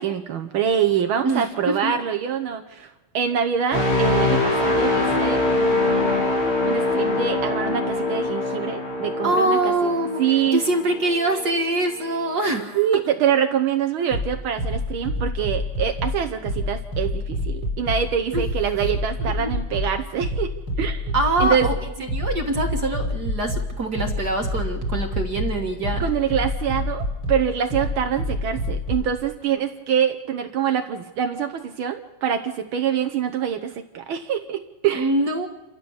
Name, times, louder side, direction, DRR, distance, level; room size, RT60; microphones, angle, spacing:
voice 1, 0.0-9.9 10.2-10.6 12.8-21.1 21.4-21.7 26.0-35.1, right 8 dB, 75° right, 7 dB, 1.8 m, -25 dB
voice 2, 1.2-1.9 9.2-13.0 18.3-18.4 19.2-19.5 21.1-26.0 34.9-35.5, right 2 dB, 50° right, 4 dB, 2.0 m, -24 dB
sound 1, 3.7-11.5 12.0-12.2, left 2 dB, 80° left, 6.3 m, -23 dB
sound 2, 14.1-29.1, left 1 dB, 45° left, 4.7 m, -27 dB
28.5 x 13.5 x 7.1 m, 1.1 s
omnidirectional pair, 2.3 m